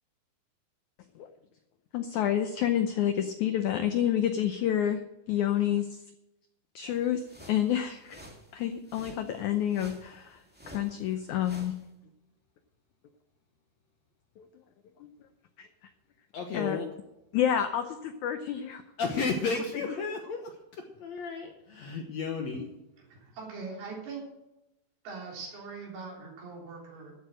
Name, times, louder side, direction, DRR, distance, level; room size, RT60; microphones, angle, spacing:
voice 1, 1.9-5.0 5.3-6.0 6.7-8.2 8.5-10.4 10.7-11.7 14.4-14.5 15.6-15.7 16.5-16.8 17.3-18.8, left 10 dB, 85° left, 8 dB, 1.7 m, -29 dB
sound 1, 6.9-11.8, equal, 5° right, 0.9 m, -51 dB
voice 2, 16.3-16.9 19.0-22.7, left 4 dB, 65° left, 4 dB, 1.8 m, -33 dB
voice 3, 23.0-24.3 25.0-27.1, right 4 dB, 80° right, -2 dB, 5.4 m, -41 dB
13.5 x 8.4 x 6.3 m, 0.92 s
omnidirectional pair, 4.4 m